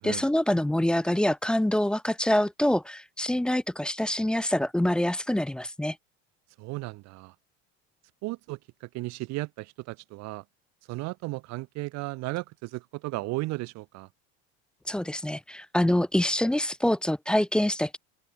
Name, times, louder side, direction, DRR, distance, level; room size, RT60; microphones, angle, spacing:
voice 1, 0.0-6.0 14.9-18.0, left 1 dB, 5° left, 0.4 m, -25 dB
voice 2, 6.6-7.3 8.2-10.4 10.9-14.1, right 21 dB, 65° right, 1.8 m, -35 dB
open air
supercardioid pair, 110°, 30 cm